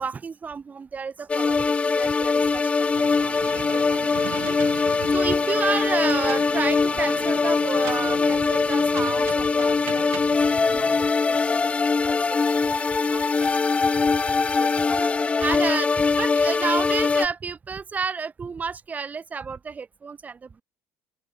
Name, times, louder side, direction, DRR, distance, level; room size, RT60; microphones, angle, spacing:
voice 1, 0.0-20.6, right 5 dB, 30° right, 1.0 m, -32 dB
sound 1, 1.3-17.3, left 4 dB, 20° left, 0.6 m, -22 dB
sound 2, 2.9-11.0, right 19 dB, 65° right, 0.7 m, -39 dB
open air
hypercardioid pair, 75°, 6 cm